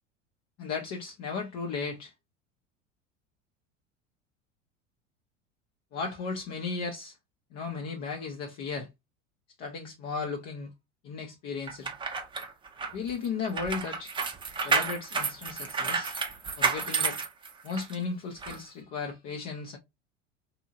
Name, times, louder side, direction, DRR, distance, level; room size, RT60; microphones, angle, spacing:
voice 1, 0.6-2.1 5.9-7.2 7.5-8.9 9.6-10.7 11.0-11.9 12.9-14.1 14.6-16.1 16.6-17.2 17.6-19.8, left 5 dB, 40° left, 0.6 m, -35 dB
sound 1, 11.7-18.0 18.4-18.6, right 5 dB, 15° right, 0.5 m, -31 dB
2.8 x 2.6 x 2.4 m
hypercardioid pair, 80°, 38 cm